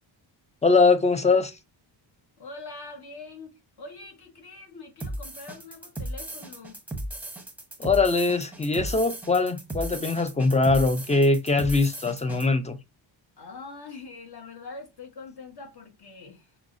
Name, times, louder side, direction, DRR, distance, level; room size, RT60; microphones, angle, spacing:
voice 1, 0.6-1.5 7.8-12.8, left 3 dB, 15° left, 0.3 m, -22 dB
voice 2, 2.4-6.8 13.4-16.5, left 3 dB, 50° left, 1.1 m, -43 dB
sound 1, 5.0-12.5, right 1 dB, 5° right, 0.7 m, -36 dB
5.8 x 2.0 x 2.4 m
cardioid pair, 105°, 48 cm